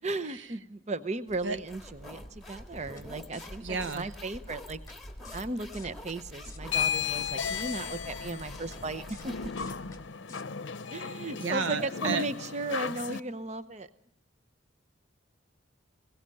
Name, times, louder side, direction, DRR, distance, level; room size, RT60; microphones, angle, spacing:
voice 1, 0.0-4.8 5.3-9.3 10.9-13.9, right 2 dB, 35° right, 13 dB, 0.7 m, -36 dB
sound 1, 1.3-10.1, left 1 dB, ahead, 1.8 m, -46 dB
sound 2, 3.0-3.1 3.3-3.5 3.8-3.9 4.9-5.0 5.2-5.4 5.7-6.2 6.4-6.9 7.2-7.4 7.6-7.8 8.7-8.8 9.1-9.3 9.6-10.0 10.3-10.4, left 5 dB, 15° left, 1.3 m, -50 dB
voice 2, 3.6-4.1 11.4-12.2, right 5 dB, 75° right, 13 dB, 0.7 m, -32 dB
sound 3, 6.6-13.2, left 7 dB, 70° left, 0.7 m, -35 dB
22.0 x 17.5 x 7.6 m, 0.78 s
head